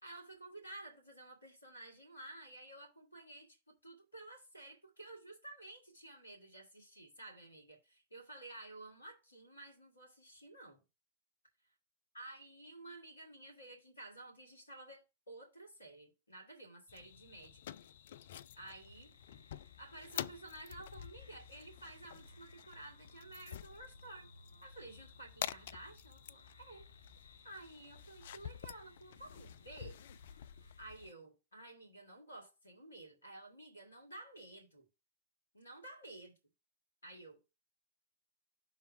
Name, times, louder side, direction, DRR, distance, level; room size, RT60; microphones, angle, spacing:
voice 1, 0.0-10.8 12.1-17.6 18.5-19.1 19.8-24.3 24.6-26.9 27.4-30.0 30.8-34.8 35.5-36.3 37.0-37.4, right 2 dB, 80° left, 2.1 m, -53 dB
sound 1, 16.9-31.1, left 10 dB, 60° left, 0.3 m, -49 dB
sound 2, 18.9-30.9, left 1 dB, 90° right, 0.8 m, -61 dB
5.4 x 4.1 x 5.6 m
figure-of-eight pair, 90°, 0 cm